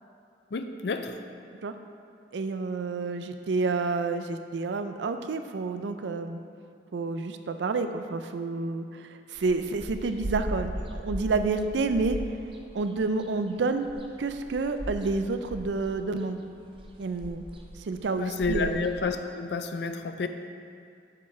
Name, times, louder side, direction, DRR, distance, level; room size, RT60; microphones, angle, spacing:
voice 1, 0.5-1.2 18.2-20.3, left 3 dB, 70° left, 8 dB, 0.4 m, -30 dB
voice 2, 2.3-6.4 6.9-12.2 12.7-13.9 14.2-16.4 17.0-17.4 17.9-18.8, right 3 dB, 80° right, 8 dB, 0.4 m, -29 dB
sound 1, 9.4-19.1, right 1 dB, 30° right, 0.5 m, -38 dB
7.1 x 6.8 x 3.2 m, 2.4 s
head